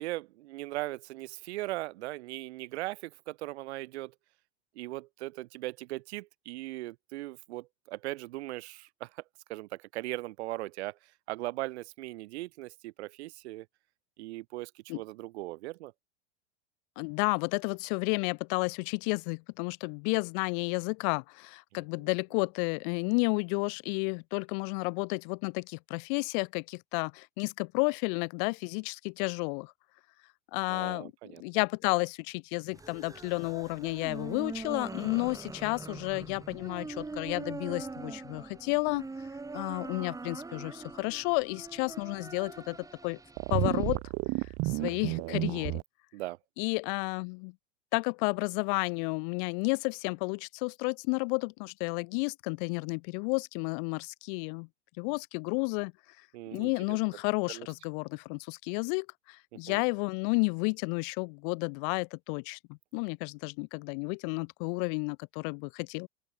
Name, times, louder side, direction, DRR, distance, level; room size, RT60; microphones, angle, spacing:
voice 1, 0.0-4.1 4.8-9.2 9.5-11.0 11.3-13.7 14.2-15.9 30.7-31.4 44.8-45.6 46.1-46.4 56.3-57.0 57.5-57.7 59.7-59.8, right 18 dB, 80° right, 0.6 m, -39 dB
voice 2, 17.0-29.7 30.5-31.1 31.4-39.1 39.5-42.8 43.0-43.2 43.5-44.0 44.6-45.8 46.6-47.5 47.9-54.7 55.0-55.9 56.5-62.6 62.9-66.1, left 38 dB, 55° left, 0.4 m, -31 dB
sound 1, 32.7-44.0, right 3 dB, 10° right, 2.3 m, -43 dB
sound 2, 43.4-45.8, right 24 dB, 50° right, 1.2 m, -31 dB
open air
supercardioid pair, 120°, 32 cm